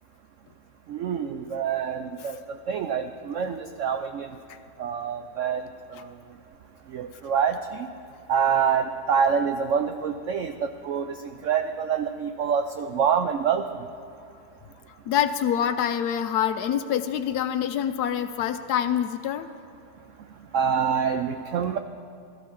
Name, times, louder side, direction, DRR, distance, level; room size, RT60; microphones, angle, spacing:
voice 1, 0.9-2.4 2.7-4.4 4.8-5.6 6.9-7.9 8.3-13.7 20.5-21.8, right 7 dB, 80° right, 8 dB, 0.7 m, -26 dB
voice 2, 15.1-19.5, left 9 dB, 75° left, 10 dB, 1.1 m, -26 dB
16.5 x 13.5 x 3.7 m, 2.7 s
omnidirectional pair, 1.9 m